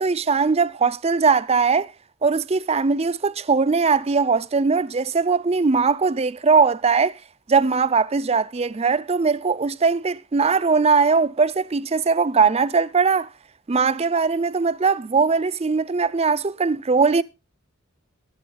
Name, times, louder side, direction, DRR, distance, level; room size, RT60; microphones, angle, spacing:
voice 1, 0.0-1.9 2.2-7.2 7.5-13.3 13.7-17.2, right 5 dB, 30° right, 0.5 m, -20 dB
24.0 x 8.0 x 2.3 m
head